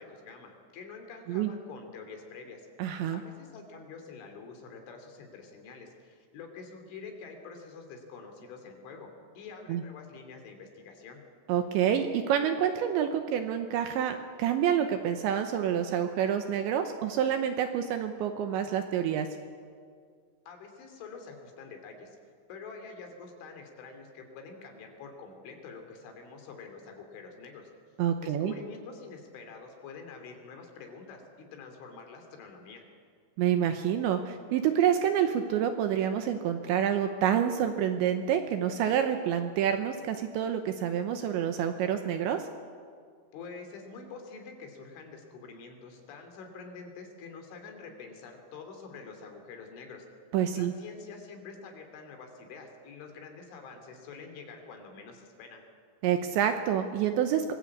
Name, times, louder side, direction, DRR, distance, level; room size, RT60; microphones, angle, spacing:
voice 1, 0.0-2.7 3.1-9.1 9.3-11.2 20.5-22.2 22.5-27.7 28.2-32.8 43.3-50.1 50.5-55.6, left 4 dB, 65° left, 4 dB, 5.1 m, -46 dB
voice 2, 2.8-3.2 9.7-9.8 11.5-19.3 28.0-28.5 33.4-42.4 50.3-50.7 56.0-57.5, right 9 dB, 75° right, 7 dB, 2.9 m, -28 dB
24.5 x 21.0 x 8.5 m, 2.1 s
omnidirectional pair, 6.0 m